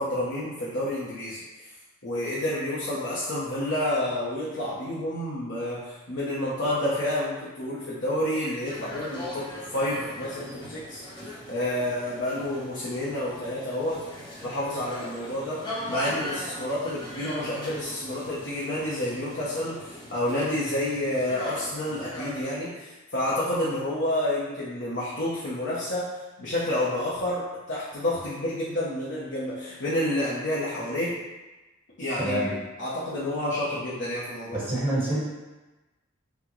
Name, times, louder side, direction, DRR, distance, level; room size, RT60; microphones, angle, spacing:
voice 1, 0.0-1.7 2.0-11.0 11.5-14.0 14.4-15.6 15.9-26.1 26.4-31.1 32.0-32.5 32.8-34.7, left 1 dB, 60° left, -8 dB, 0.7 m, -29 dB
sound 1, 8.6-22.4, left 1 dB, 20° left, 0.9 m, -39 dB
voice 2, 32.2-32.5 34.5-35.2, right 1 dB, 10° right, -9 dB, 1.3 m, -26 dB
5.7 x 2.1 x 3.0 m, 1.1 s
head